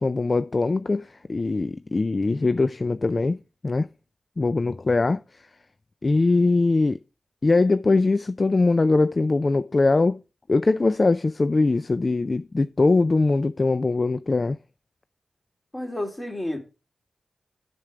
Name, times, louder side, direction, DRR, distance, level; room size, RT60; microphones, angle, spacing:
voice 1, 0.0-3.4 3.6-3.9 4.4-5.2 6.0-7.0 7.4-10.2 10.5-14.6, left 3 dB, 45° left, 0.4 m, -21 dB
voice 2, 15.7-16.6, left 1 dB, 25° left, 3.0 m, -30 dB
7.3 x 6.9 x 4.8 m
cardioid pair, 45°, 0 cm